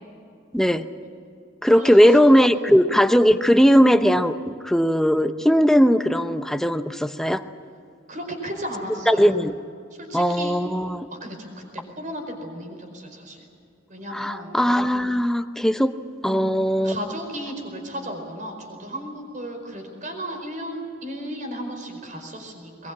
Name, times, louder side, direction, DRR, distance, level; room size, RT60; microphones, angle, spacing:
voice 1, 0.5-0.8 1.6-7.4 9.1-9.5 10.1-11.1 14.1-15.9 16.2-17.0, equal, ahead, 8 dB, 0.7 m, -18 dB
voice 2, 1.8-2.8 8.1-9.3 9.9-10.6 11.1-11.5 11.7-13.4 13.9-14.5 16.2-16.5 16.8-22.9, right 1 dB, 45° right, 4 dB, 4.9 m, -34 dB
22.0 x 21.0 x 8.7 m, 2.4 s
head